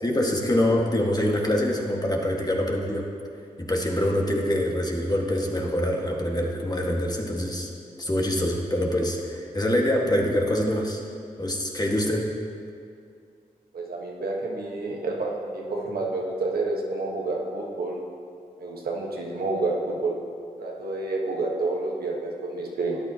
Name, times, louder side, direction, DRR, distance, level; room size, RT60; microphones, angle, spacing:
voice 1, 0.0-3.0 3.6-7.7 8.0-11.0 11.4-12.2, left 1 dB, 25° left, 0 dB, 1.6 m, -25 dB
voice 2, 13.7-18.0 18.6-20.1 20.6-23.0, right 2 dB, 80° right, -1 dB, 1.3 m, -29 dB
12.5 x 9.0 x 2.9 m, 2.3 s
cardioid pair, 45°, 16 cm